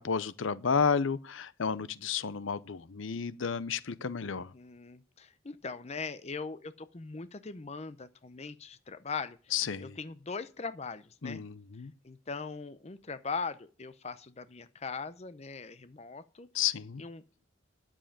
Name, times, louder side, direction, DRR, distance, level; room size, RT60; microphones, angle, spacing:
voice 1, 0.0-4.5 9.5-10.0 11.2-11.9 16.5-17.0, left 6 dB, 75° left, 0.7 m, -32 dB
voice 2, 4.5-9.4 9.8-11.4 12.0-16.5 17.0-17.2, left 4 dB, 35° left, 0.6 m, -40 dB
10.5 x 7.3 x 8.7 m
head